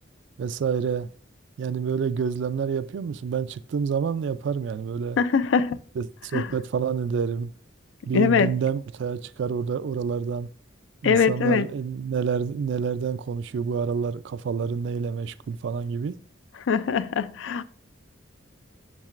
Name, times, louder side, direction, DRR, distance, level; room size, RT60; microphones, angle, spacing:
voice 1, 0.4-1.1 1.6-5.2 6.0-7.5 8.1-10.5 11.0-16.1, right 6 dB, 60° right, 0.3 m, -28 dB
voice 2, 5.2-5.8 6.3-6.5 8.1-8.5 11.0-11.7 16.7-17.6, left 6 dB, 70° left, 0.4 m, -22 dB
7.3 x 6.6 x 2.4 m
head